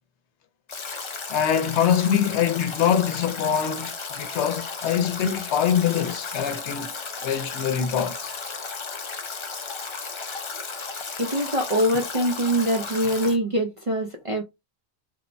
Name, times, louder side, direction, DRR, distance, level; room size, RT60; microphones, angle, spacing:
Stream / Drip / Trickle dribble, 0.7-13.4, left 4 dB, 45° left, 0.4 m, -34 dB
voice 1, 1.3-6.9 7.2-8.3, left 8 dB, 80° left, 0.9 m, -24 dB
voice 2, 11.2-14.4, right 1 dB, 50° right, 0.4 m, -24 dB
3.1 x 2.0 x 2.5 m
omnidirectional pair, 1.1 m